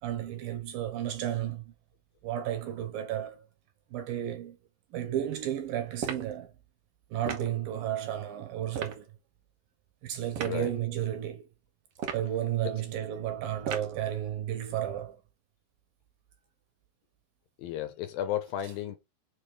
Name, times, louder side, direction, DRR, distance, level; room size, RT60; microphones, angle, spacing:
voice 1, 0.0-1.7 2.2-3.5 3.9-4.6 4.9-6.5 7.1-9.1 10.0-11.5 12.1-15.2, right 11 dB, 75° right, 2.4 m, -33 dB
sound 1, 6.0-6.3 7.3-7.5 8.7-9.0 10.3-10.6 11.9-12.3 13.6-14.0, right 7 dB, 90° right, 1.3 m, -36 dB
voice 2, 17.6-19.0, left 11 dB, 75° left, 2.4 m, -33 dB
6.6 x 3.7 x 4.9 m
omnidirectional pair, 4.6 m